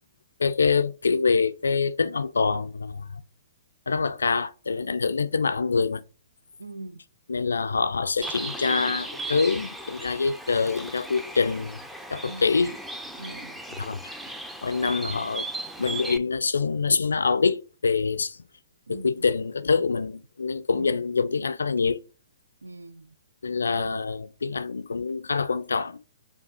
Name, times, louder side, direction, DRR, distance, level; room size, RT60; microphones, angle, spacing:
voice 1, 0.4-3.2 3.9-6.0 7.3-11.8 12.1-12.8 13.8-14.1 14.6-15.5 15.8-18.4 18.9-22.0 23.4-26.0, left 4 dB, 75° left, 0.4 m, -25 dB
voice 2, 6.6-7.0 12.2-12.4 13.2-13.6 18.9-19.2 20.7-21.0 22.6-23.2, right 2 dB, 80° right, 0.3 m, -41 dB
Bird, 8.2-16.2, right 2 dB, 5° right, 0.5 m, -36 dB
5.3 x 2.4 x 4.1 m
figure-of-eight pair, 115°, 0 cm